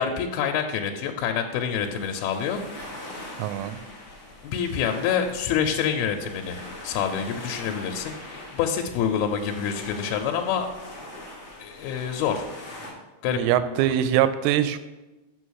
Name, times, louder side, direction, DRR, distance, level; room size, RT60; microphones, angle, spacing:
voice 1, 0.0-2.8 4.4-6.6 6.8-10.7 11.6-12.5 13.2-13.4, left 7 dB, 85° left, 4 dB, 2.6 m, -27 dB
sound 1, 1.7-12.9, left 1 dB, 40° left, 1.9 m, -42 dB
voice 2, 3.4-3.8 13.3-14.8, right 11 dB, 90° right, 12 dB, 2.5 m, -23 dB
6.4 x 5.7 x 6.3 m, 1.1 s
omnidirectional pair, 4.4 m